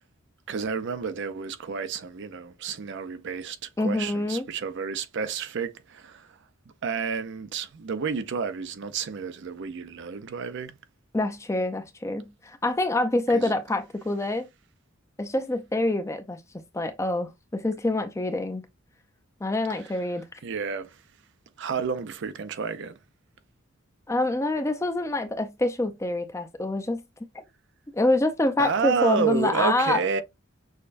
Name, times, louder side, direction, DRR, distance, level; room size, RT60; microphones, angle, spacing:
voice 1, 0.5-6.4 6.8-10.8 13.3-13.5 19.8-19.9 20.4-21.0 21.6-23.0 28.6-30.2, right 5 dB, 60° right, 0.5 m, -30 dB
voice 2, 3.8-4.5 11.1-14.5 15.2-16.4 16.7-18.6 19.4-20.2 24.1-27.0 27.9-30.0, left 2 dB, 15° left, 0.5 m, -26 dB
6.3 x 2.2 x 2.5 m
head